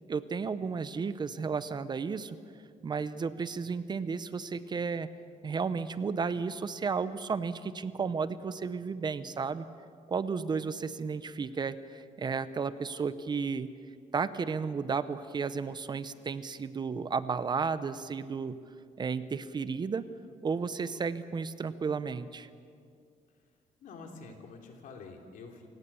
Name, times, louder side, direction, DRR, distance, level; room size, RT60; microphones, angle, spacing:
voice 1, 0.1-2.4 2.8-5.1 5.4-9.6 10.1-13.7 14.1-18.6 19.0-20.1 20.4-22.5, right 5 dB, 30° right, 14 dB, 0.7 m, -33 dB
voice 2, 23.8-25.7, left 4 dB, 75° left, 3 dB, 3.2 m, -47 dB
28.0 x 17.5 x 7.0 m, 2.3 s
cardioid pair, 140°, 14 cm